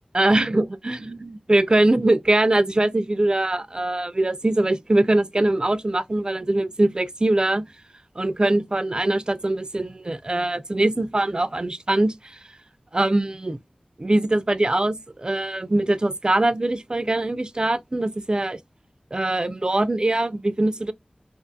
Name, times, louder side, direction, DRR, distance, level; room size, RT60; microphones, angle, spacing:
voice 1, 0.1-7.6 8.2-12.1 12.9-13.6 14.0-18.6 19.1-20.9, right 2 dB, 30° right, 0.3 m, -22 dB
2.5 x 2.4 x 2.5 m
wide cardioid pair, 60°, 3 cm